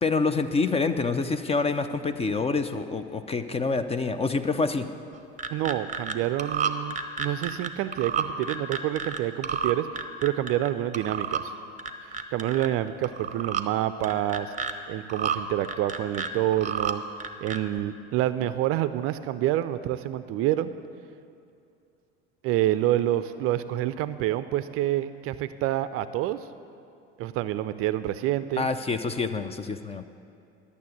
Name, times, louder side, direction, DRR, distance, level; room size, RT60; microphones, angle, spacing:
voice 1, 0.0-4.9 28.6-30.0, left 4 dB, 20° left, 10 dB, 0.5 m, -27 dB
sound 1, 5.1-6.1 6.4-9.2 9.4-10.7 10.9-11.4 11.8-12.7 13.0-13.6 14.0-14.7 15.1-15.4 15.6-16.9 17.2-17.8, right 6 dB, 20° right, 0.8 m, -30 dB
voice 2, 5.5-11.5 12.3-14.5 14.9-17.0 17.4-20.7 22.4-26.4 27.2-28.7, right 13 dB, 45° right, 13 dB, 0.5 m, -27 dB
12.0 x 6.9 x 7.9 m, 2.5 s
figure-of-eight pair, 70°, 33 cm